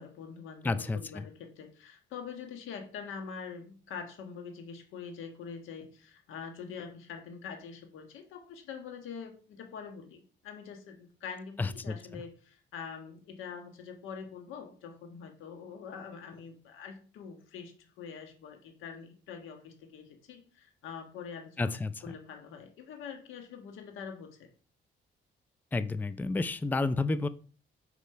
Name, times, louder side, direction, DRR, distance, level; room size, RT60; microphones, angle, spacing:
voice 1, 0.0-21.7 22.0-24.5, left 6 dB, 90° left, 5 dB, 1.4 m, -44 dB
voice 2, 0.6-1.2 11.6-12.2 21.6-22.1 25.7-27.3, left 3 dB, 10° left, 14 dB, 0.4 m, -31 dB
5.2 x 4.7 x 5.6 m, 0.40 s
cardioid pair, 90°, 20 cm